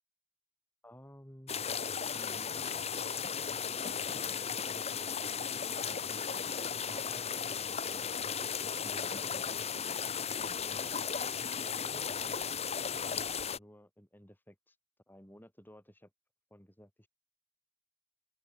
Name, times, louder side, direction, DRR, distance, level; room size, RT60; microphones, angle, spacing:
voice 1, 0.8-1.6 2.1-4.5 4.9-10.0 10.6-12.4 12.9-14.8 15.1-16.1 16.5-17.1, equal, 10° left, 6.0 m, -55 dB
sound 1, 1.5-13.6, left 7 dB, 35° left, 1.4 m, -35 dB
open air
head